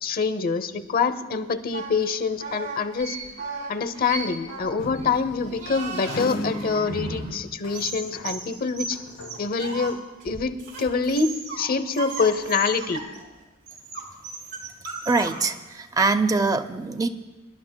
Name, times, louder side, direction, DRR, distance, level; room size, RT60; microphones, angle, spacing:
voice 1, 0.0-3.2 3.7-9.0 9.4-10.0 10.2-11.3 11.6-13.0, left 5 dB, 45° left, 11 dB, 0.7 m, -25 dB
sound 1, 1.7-7.4 7.6-9.9 10.2-11.7 11.9-13.2 13.7-15.5, right 3 dB, 65° right, 3.9 m, -36 dB
sound 2, 4.8-8.5 8.8-10.0, left 1 dB, 85° left, 1.1 m, -37 dB
voice 2, 15.1-17.1, right 3 dB, 20° right, 10 dB, 0.5 m, -23 dB
26.5 x 11.5 x 2.2 m, 1.2 s
head